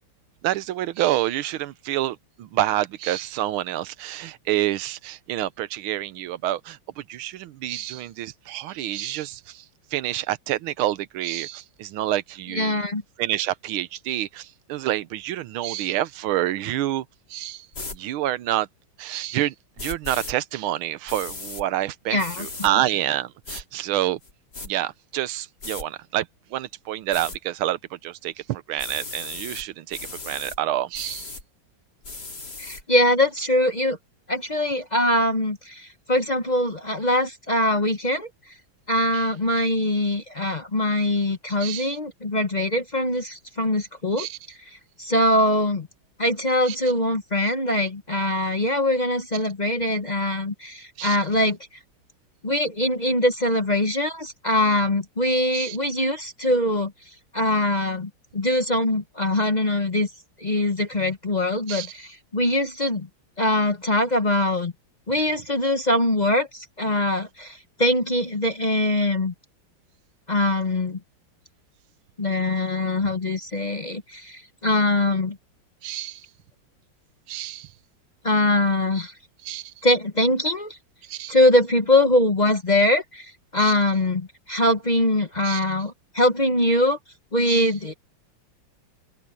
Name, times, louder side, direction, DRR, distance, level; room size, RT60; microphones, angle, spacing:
voice 1, 0.4-9.6 9.9-12.8 13.2-17.0 17.3-17.7 17.9-18.7 19.0-24.2 24.6-31.3 39.1-39.3 41.6-41.9 44.2-44.4 46.7-46.8 51.0-51.2 55.5-55.8 61.7-61.9 75.8-76.2 77.3-77.7 79.4-79.7 81.0-81.4 83.6-83.8 85.4-85.6 87.5-87.7, right 13 dB, 85° right, 1.6 m, -28 dB
voice 2, 12.5-13.0 22.1-22.5 32.6-34.0 34.3-38.3 38.9-44.3 45.0-45.9 46.2-51.6 52.4-56.9 57.3-60.1 60.4-63.1 63.4-64.7 65.1-69.3 70.3-71.0 72.2-75.4 78.2-79.1 79.8-80.8 81.3-87.0 87.3-87.9, left 1 dB, 30° left, 0.8 m, -22 dB
sound 1, 17.7-18.0 19.8-20.3 21.1-21.6 22.2-22.7 23.4-23.6 24.2-24.7 25.6-25.8 27.1-27.4 28.8-29.6 29.9-30.6 30.9-31.4 32.0-32.8, left 3 dB, 50° left, 4.8 m, -36 dB
open air
omnidirectional pair, 2.2 m